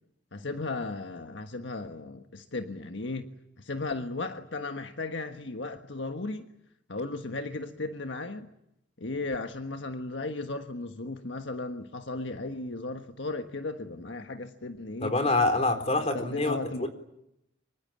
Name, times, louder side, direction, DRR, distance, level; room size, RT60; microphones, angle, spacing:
voice 1, 0.3-3.3 3.6-6.5 6.9-8.5 9.0-15.1 16.1-16.9, left 3 dB, 75° left, 6 dB, 1.5 m, -35 dB
voice 2, 15.0-16.9, left 2 dB, 35° left, 7 dB, 4.1 m, -26 dB
25.5 x 24.0 x 8.7 m, 0.81 s
head